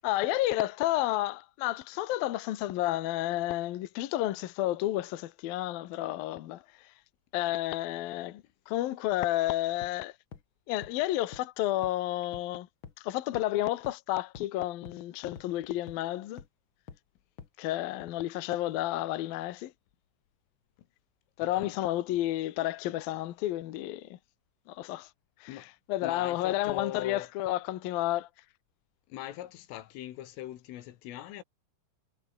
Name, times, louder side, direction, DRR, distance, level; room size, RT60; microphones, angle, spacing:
voice 1, 0.0-6.6 7.3-10.1 10.7-12.7 13.0-16.4 17.6-19.7 21.4-24.2 24.7-25.1 25.4-28.3, left 15 dB, 65° left, 2.4 m, -31 dB
sound 1, 9.8-9.9 10.3-10.4 10.8-10.9 11.3-11.4 11.8-11.9 12.3-12.4 12.8-12.9 13.3-13.4 13.8-13.9 14.3-14.4 14.8-14.9 15.4-15.5 15.9-16.0 16.4-16.5 16.9-17.0 17.4-17.5, left 6 dB, 50° left, 1.6 m, -45 dB
voice 2, 26.0-27.3 29.1-31.4, left 13 dB, 80° left, 4.3 m, -41 dB
omnidirectional pair, 5.7 m